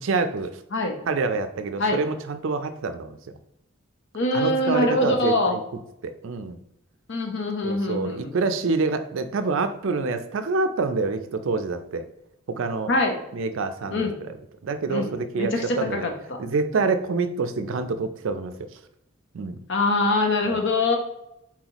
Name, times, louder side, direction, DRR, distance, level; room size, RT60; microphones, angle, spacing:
voice 1, 0.0-0.5 1.1-3.2 4.3-5.6 6.0-6.6 7.6-12.1 12.5-12.9 13.3-14.1 14.6-16.1 16.4-18.7 19.3-19.6 20.5-20.6, right 3 dB, 60° right, 9 dB, 0.4 m, -26 dB
voice 2, 4.1-5.5 7.1-8.3 12.9-13.2 13.9-14.2 14.9-15.1 15.4-16.1 19.7-21.0, left 2 dB, 55° left, 3 dB, 0.8 m, -23 dB
4.2 x 4.0 x 2.9 m, 0.83 s
head